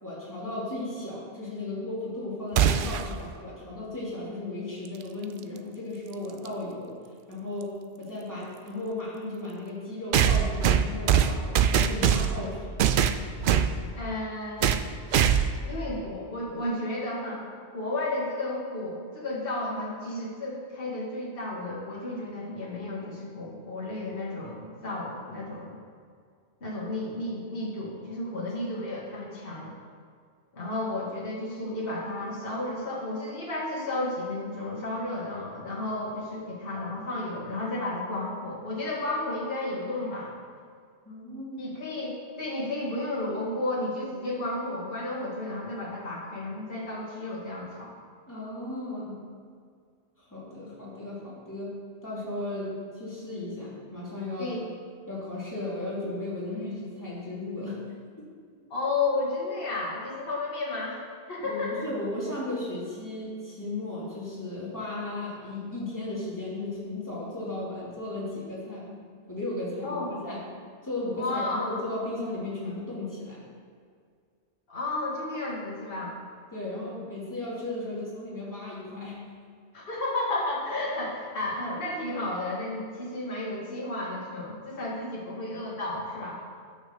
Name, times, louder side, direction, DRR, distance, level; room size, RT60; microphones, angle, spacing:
voice 1, 0.0-6.9 7.3-12.8 28.3-28.8 41.0-41.7 48.3-49.2 50.2-51.8 52.0-54.6 55.1-57.8 61.4-69.0 69.3-70.5 70.8-73.4 76.5-79.2, left 2 dB, 15° left, -7 dB, 2.9 m, -35 dB
sound 1, 2.6-3.1 5.2-5.3 6.4-6.5 10.1-12.4 12.8-13.7 14.6-14.9 15.1-15.6, right 8 dB, 60° right, 0.6 m, -22 dB
voice 2, 14.0-14.7 15.6-17.4 17.7-25.7 26.6-29.7 30.5-40.3 41.6-47.9 54.4-54.6 58.7-61.0 61.3-61.8 69.8-70.1 71.2-71.7 74.7-76.1 79.7-86.4, left 2 dB, 55° left, -4 dB, 2.0 m, -32 dB
8.8 x 6.4 x 6.7 m, 2.1 s
omnidirectional pair, 1.2 m